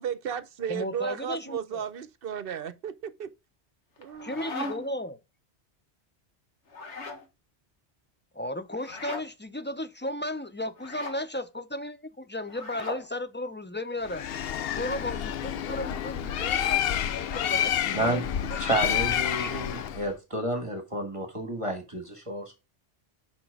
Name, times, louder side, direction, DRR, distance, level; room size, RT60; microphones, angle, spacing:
voice 1, 0.0-3.3 4.0-4.4, right 8 dB, 60° right, 0.9 m, -34 dB
voice 2, 0.7-1.8 4.2-5.2 8.3-14.2 14.8-18.2 19.1-19.5, left 1 dB, 15° left, 0.4 m, -35 dB
sound 1, 4.0-5.0 6.7-7.3 8.8-9.3 10.8-11.2 12.5-13.1, left 2 dB, 80° left, 1.8 m, -38 dB
Bird, 14.1-20.1, left 10 dB, 65° left, 0.7 m, -29 dB
voice 3, 18.6-22.6, right 1 dB, 30° right, 1.6 m, -30 dB
6.0 x 5.6 x 4.7 m
omnidirectional pair, 1.2 m